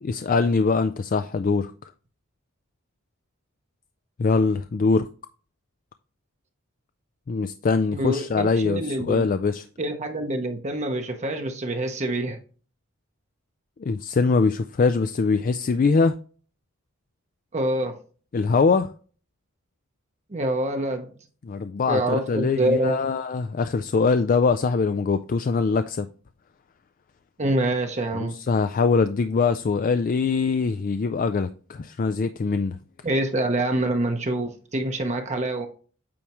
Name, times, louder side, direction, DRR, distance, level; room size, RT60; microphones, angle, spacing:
voice 1, 0.0-1.7 4.2-5.1 7.3-9.6 13.8-16.1 18.3-18.9 21.5-26.1 28.2-32.8, left 4 dB, 40° left, 0.3 m, -23 dB
voice 2, 7.9-9.2 9.8-12.4 17.5-18.0 20.3-21.1 21.9-23.0 27.4-28.3 33.0-35.7, right 1 dB, 35° right, 0.8 m, -26 dB
8.6 x 4.8 x 3.0 m
head